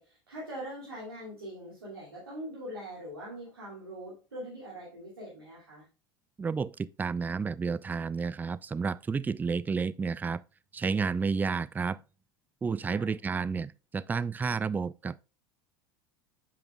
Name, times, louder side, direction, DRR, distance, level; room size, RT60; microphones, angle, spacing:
voice 1, 0.0-5.8 12.9-13.1, equal, 85° right, 2.6 m, -42 dB
voice 2, 6.4-10.4 10.7-12.0 12.6-15.2, right 5 dB, 15° right, 0.3 m, -31 dB
8.9 x 5.8 x 2.2 m
figure-of-eight pair, 75°, 12 cm